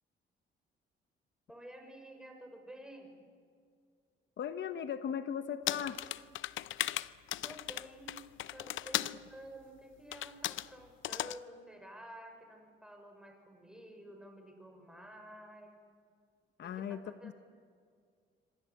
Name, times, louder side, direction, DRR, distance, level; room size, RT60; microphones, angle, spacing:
voice 1, 1.5-3.2 7.4-8.2 8.5-15.8 16.6-17.3, right 1 dB, 5° right, 4 dB, 6.4 m, -51 dB
voice 2, 4.4-6.0 16.6-17.3, left 8 dB, 60° left, 10 dB, 1.2 m, -38 dB
sound 1, 5.7-9.2 10.1-10.7 11.0-11.4, left 14 dB, 75° left, 0.7 m, -37 dB
26.5 x 24.5 x 8.5 m, 2.2 s
cardioid pair, 90°, 20 cm